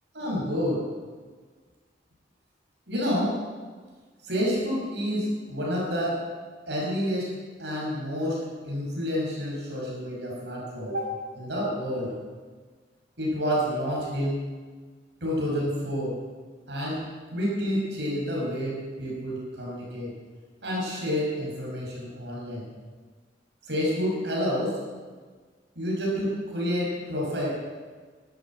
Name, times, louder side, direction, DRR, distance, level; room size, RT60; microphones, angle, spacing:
voice 1, 0.1-0.8 2.9-3.4 4.3-6.2 6.7-7.3 7.6-12.1 13.2-14.4 15.2-16.2 16.7-17.0 17.3-20.1 20.6-22.7 23.7-24.8 25.8-27.5, equal, 70° right, -4 dB, 6.2 m, -29 dB
13.5 x 12.5 x 8.5 m, 1.5 s
head